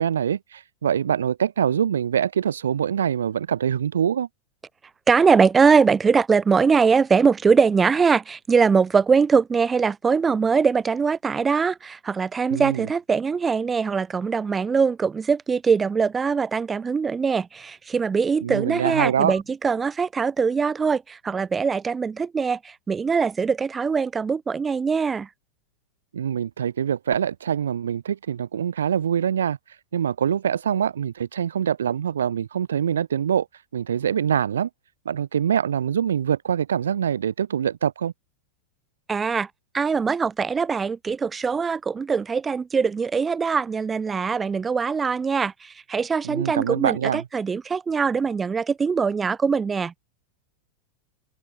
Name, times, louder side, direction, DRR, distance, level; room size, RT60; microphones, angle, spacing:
voice 1, 0.0-4.3 12.5-12.9 18.4-19.4 26.1-34.7 35.1-38.1 46.2-47.2, right 8 dB, 65° right, 3.6 m, -24 dB
voice 2, 5.1-25.3 39.1-39.5 39.7-50.0, right 5 dB, 15° right, 4.6 m, -22 dB
open air
figure-of-eight pair, 90°, 0 cm